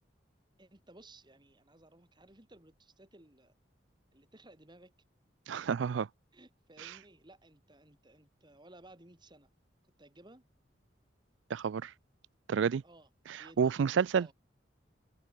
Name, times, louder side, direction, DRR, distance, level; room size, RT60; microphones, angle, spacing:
voice 1, 0.6-3.5 4.1-4.9 6.3-9.5 10.0-10.4 12.8-13.1 13.4-14.3, right 1 dB, 25° right, 2.6 m, -58 dB
voice 2, 5.5-6.1 6.8-6.9 11.5-11.9 12.5-12.8 13.3-14.3, right 6 dB, 75° right, 0.4 m, -30 dB
open air
head